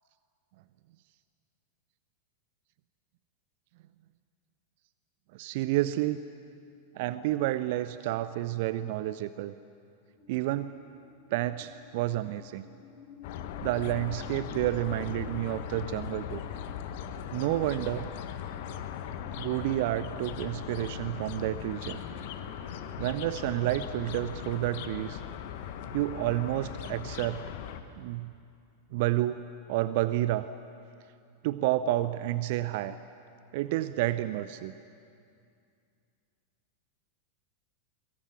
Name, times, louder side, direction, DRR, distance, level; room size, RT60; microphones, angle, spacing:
voice 1, 5.3-6.2 6.9-9.5 10.3-10.8 11.3-12.6 13.6-16.4 17.3-18.1 19.4-22.0 23.0-25.2 25.9-27.4 28.0-28.3 28.9-30.5 31.4-33.0 33.5-34.7, right 15 dB, 50° right, 14 dB, 0.7 m, -30 dB
sound 1, 10.2-27.1, left 4 dB, 15° left, 6.7 m, -53 dB
sound 2, 13.2-27.8, left 9 dB, 50° left, 1.6 m, -39 dB
23.0 x 23.0 x 9.6 m, 2.4 s
figure-of-eight pair, 90°, 0 cm